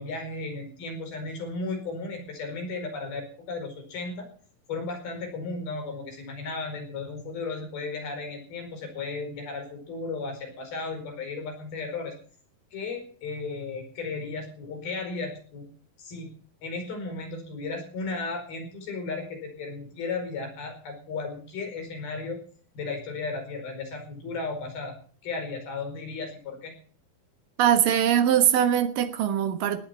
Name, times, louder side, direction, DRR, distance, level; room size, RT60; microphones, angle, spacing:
voice 1, 0.0-4.3 4.7-12.1 12.7-15.7 16.0-16.3 16.6-22.4 22.7-24.9 25.2-26.7, left 3 dB, 80° left, 4 dB, 6.8 m, -35 dB
voice 2, 27.6-29.8, right 10 dB, 70° right, 9 dB, 2.9 m, -22 dB
18.0 x 11.0 x 5.7 m, 0.43 s
omnidirectional pair, 4.3 m